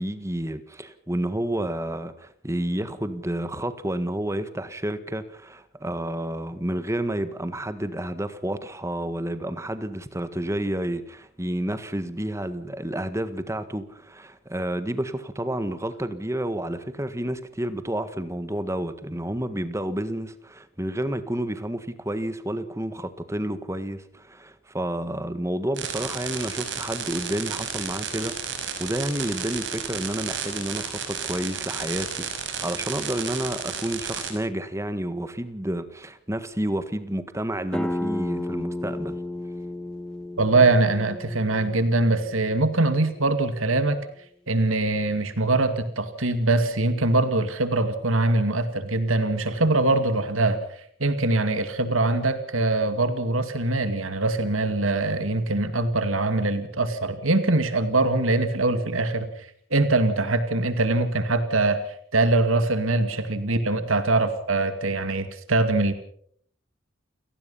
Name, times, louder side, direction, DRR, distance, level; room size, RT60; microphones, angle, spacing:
voice 1, 0.0-39.2, right 1 dB, 15° right, 1.5 m, -30 dB
sound 1, 25.8-34.3, right 7 dB, 60° right, 5.4 m, -32 dB
sound 2, 37.7-43.1, left 1 dB, 5° left, 1.0 m, -33 dB
voice 2, 40.4-44.0 44.5-50.6 51.0-59.3 59.7-61.8 62.1-65.9, right 2 dB, 90° right, 2.3 m, -23 dB
29.5 x 18.0 x 5.6 m
head